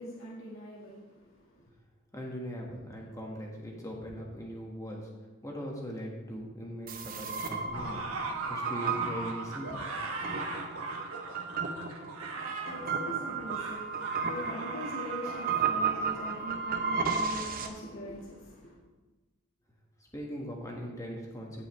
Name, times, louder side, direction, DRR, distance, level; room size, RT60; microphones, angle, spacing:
voice 1, 0.0-1.6 12.4-18.8, equal, 60° left, -5 dB, 1.6 m, -42 dB
voice 2, 2.1-5.1 5.4-8.0 8.5-9.9 20.1-21.7, equal, 15° left, -1 dB, 1.5 m, -40 dB
sound 1, 6.9-17.7, right 5 dB, 40° right, 0.8 m, -34 dB
sound 2, 7.7-16.2, right 3 dB, 75° right, 1.1 m, -39 dB
16.0 x 5.4 x 3.2 m, 1.2 s
head